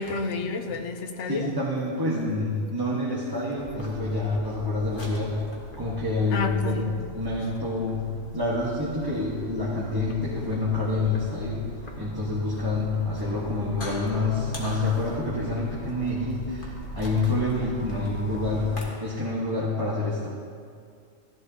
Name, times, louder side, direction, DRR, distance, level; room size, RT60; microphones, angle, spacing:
voice 1, 0.0-1.5 6.3-6.9, left 4 dB, 85° left, 6 dB, 1.1 m, -30 dB
voice 2, 1.2-5.3 5.8-8.0 8.3-11.6 12.0-20.3, left 2 dB, 20° right, -8 dB, 1.2 m, -27 dB
sound 1, 3.6-18.8, left 1 dB, 45° left, 1.6 m, -39 dB
14.5 x 11.0 x 2.7 m, 2.2 s
omnidirectional pair, 1.2 m